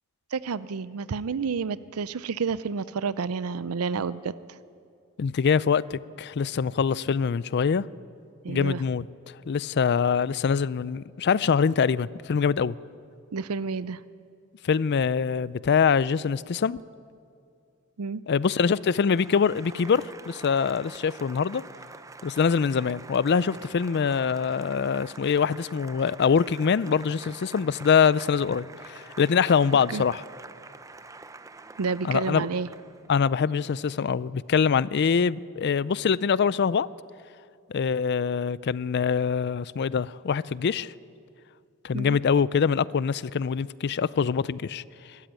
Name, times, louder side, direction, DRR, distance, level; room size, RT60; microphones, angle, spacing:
voice 1, 0.3-4.6 8.4-8.8 13.3-14.0 18.0-18.2 29.9-30.0 31.8-32.7 41.9-42.2, right 5 dB, 90° right, 0.5 m, -30 dB
voice 2, 5.2-7.8 8.5-9.1 9.5-12.7 14.6-16.8 18.3-21.6 22.2-30.2 32.1-32.4 33.1-36.9 37.7-40.9 41.8-44.8, left 6 dB, 50° left, 0.4 m, -24 dB
Applause, 18.3-33.2, right 3 dB, 15° right, 0.6 m, -46 dB
22.5 x 13.5 x 9.1 m
head